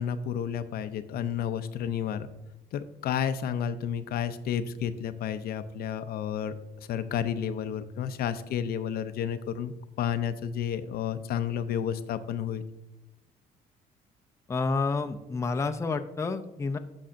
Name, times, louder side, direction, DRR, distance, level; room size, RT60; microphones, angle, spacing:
voice 1, 0.0-2.3 2.7-6.5 6.9-12.6, left 8 dB, 70° left, 11 dB, 0.5 m, -31 dB
voice 2, 14.5-16.8, left 4 dB, 15° left, 7 dB, 0.4 m, -29 dB
9.9 x 6.2 x 2.5 m, 0.96 s
cardioid pair, 105°, 17 cm